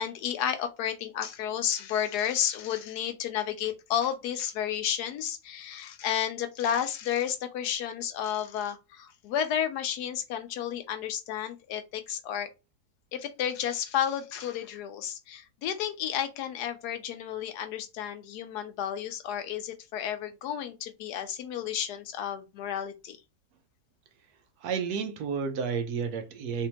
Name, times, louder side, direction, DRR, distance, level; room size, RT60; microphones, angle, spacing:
voice 1, 0.0-12.5 13.1-23.2, left 9 dB, 85° left, 1.2 m, -32 dB
voice 2, 24.6-26.7, right 6 dB, 75° right, 1.1 m, -31 dB
3.4 x 2.8 x 2.8 m
omnidirectional pair, 1.7 m